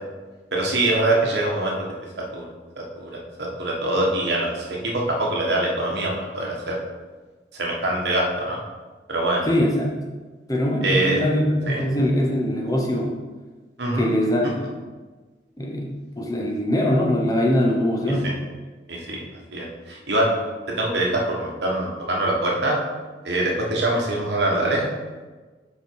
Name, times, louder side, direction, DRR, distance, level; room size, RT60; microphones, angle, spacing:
voice 1, 0.5-1.7 2.3-2.5 3.0-6.7 7.6-8.6 9.1-9.5 10.8-11.2 11.7-11.8 13.8-14.1 18.9-19.2 19.5-20.3 20.8-22.8 23.2-24.8, right 1 dB, 70° right, -2 dB, 1.4 m, -23 dB
voice 2, 9.5-10.0 10.5-13.1 14.0-14.7 15.6-18.3, equal, 20° left, -1 dB, 0.8 m, -22 dB
5.3 x 5.0 x 4.6 m, 1.3 s
head